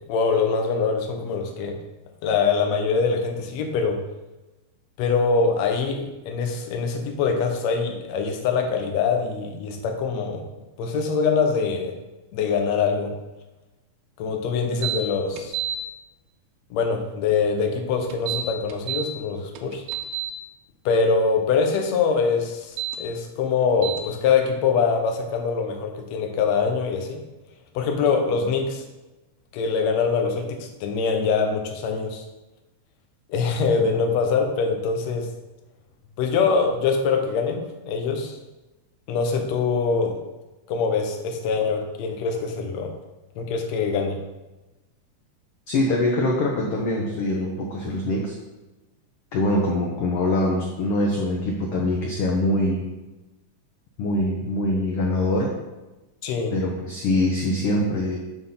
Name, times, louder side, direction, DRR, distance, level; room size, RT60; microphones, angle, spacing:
voice 1, 0.1-1.7 2.2-4.0 5.0-10.4 10.8-11.9 12.3-13.1 14.2-15.6 16.7-19.8 20.8-27.2 27.7-28.8 29.5-32.2 33.3-35.3 36.2-38.4 39.1-40.2 40.7-42.9 43.4-44.2 56.2-56.5, left 5 dB, 70° left, 3 dB, 1.8 m, -23 dB
sound 1, 14.8-15.0 15.4-15.8 18.1-19.1 19.6-20.3 22.6-23.0 23.8-24.0, right 11 dB, 90° right, 2.3 m, -28 dB
voice 2, 45.7-48.3 49.3-52.9 54.0-55.5 56.5-58.2, left 1 dB, 85° left, 0 dB, 1.3 m, -23 dB
8.0 x 3.6 x 5.6 m, 1.1 s
omnidirectional pair, 3.8 m